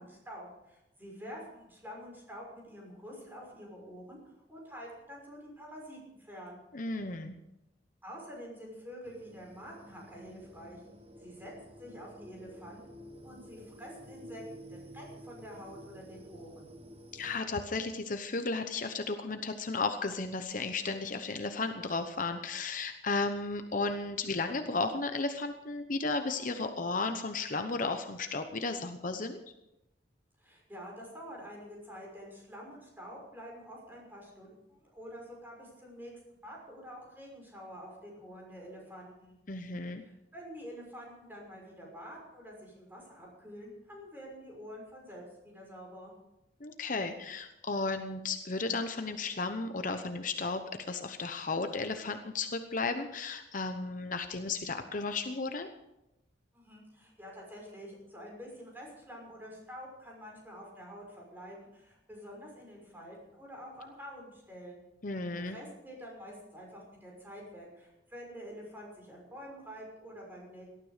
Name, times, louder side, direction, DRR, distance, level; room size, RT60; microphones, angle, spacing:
voice 1, 0.0-4.2 4.5-6.6 8.0-10.8 11.2-12.8 13.2-16.7 30.4-39.4 40.0-46.1 56.5-64.8 65.3-70.7, equal, 10° right, -2 dB, 6.1 m, -47 dB
voice 2, 6.7-7.4 17.1-29.4 39.5-40.0 46.6-55.7 65.0-65.6, left 3 dB, 50° left, 7 dB, 1.0 m, -34 dB
sound 1, 9.0-17.4, equal, 35° right, 1.5 m, -51 dB
18.5 x 13.0 x 5.1 m, 0.89 s
head